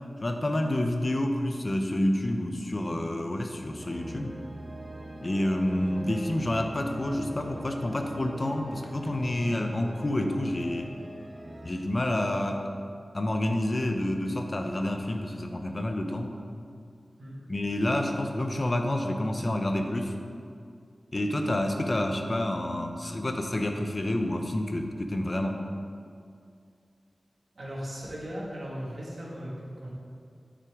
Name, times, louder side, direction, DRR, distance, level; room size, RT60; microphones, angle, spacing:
voice 1, 0.2-4.4 5.2-10.9 11.6-12.7 13.1-16.3 17.5-20.1 21.1-25.6, left 1 dB, 40° left, 4 dB, 0.7 m, -28 dB
sound 1, 3.8-11.7, right 1 dB, 35° right, 1.2 m, -42 dB
voice 2, 27.6-29.9, equal, 70° right, -5 dB, 1.9 m, -38 dB
9.6 x 5.8 x 3.6 m, 2.3 s
wide cardioid pair, 75°, 0 cm